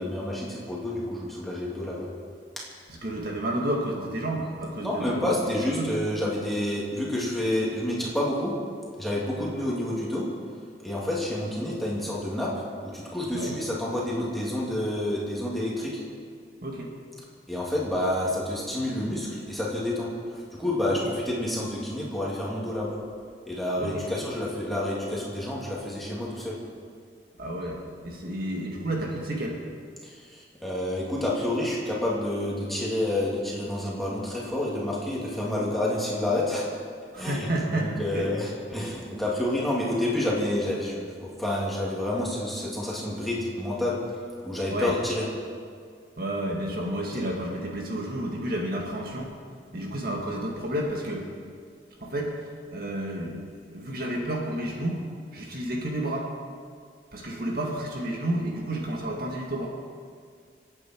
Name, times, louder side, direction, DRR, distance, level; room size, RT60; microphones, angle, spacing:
voice 1, 0.0-2.1 4.8-8.5 9.0-10.2 10.8-12.6 12.9-15.9 17.5-23.0 23.5-26.6 30.0-36.6 37.2-44.0 44.4-45.2, left 1 dB, ahead, -6 dB, 2.9 m, -29 dB
voice 2, 2.9-5.9 13.3-13.6 16.6-16.9 20.9-21.0 23.8-24.1 27.4-29.6 37.1-38.3 44.7-44.9 46.2-49.3 49.7-51.3 52.0-52.4 52.7-53.4 53.7-55.0 55.3-56.3 57.1-59.7, right 1 dB, 55° right, -1 dB, 1.9 m, -31 dB
26.0 x 9.1 x 4.6 m, 2.1 s
head